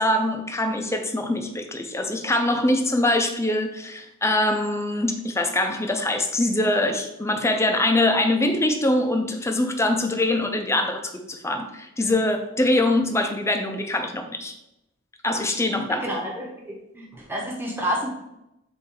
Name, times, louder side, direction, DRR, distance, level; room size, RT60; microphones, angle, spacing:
voice 1, 0.0-14.5 15.2-16.0, left 1 dB, 15° left, 5 dB, 0.6 m, -23 dB
voice 2, 15.9-18.1, equal, 10° right, -3 dB, 1.1 m, -30 dB
7.4 x 2.7 x 4.7 m, 0.86 s
head